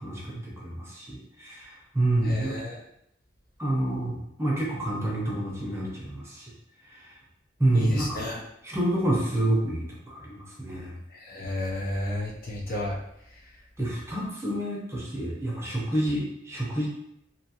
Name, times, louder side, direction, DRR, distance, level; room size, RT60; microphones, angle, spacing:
voice 1, 0.0-2.5 3.6-6.5 6.9-7.2 7.6-8.2 8.6-10.9 13.8-16.9, right 1 dB, 15° right, -4 dB, 0.6 m, -28 dB
voice 2, 2.2-2.8 7.7-8.4 11.2-13.0, left 1 dB, 50° left, -3 dB, 0.6 m, -31 dB
2.7 x 2.4 x 2.7 m, 0.77 s
head